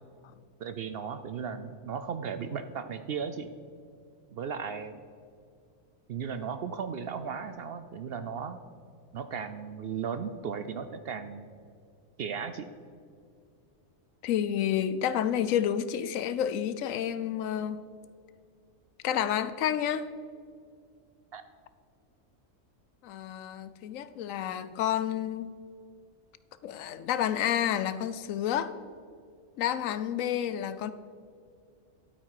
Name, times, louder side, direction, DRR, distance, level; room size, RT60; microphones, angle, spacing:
voice 1, 0.6-3.5 4.3-5.0 6.1-8.6 9.1-11.4 12.2-12.7 21.3-21.4, right 6 dB, 60° right, 10 dB, 0.6 m, -36 dB
voice 2, 14.2-17.8 19.0-20.1 23.0-25.5 26.6-28.7 29.6-30.9, left 10 dB, 80° left, 13 dB, 1.0 m, -30 dB
12.0 x 8.5 x 4.7 m, 2.3 s
omnidirectional pair, 1.4 m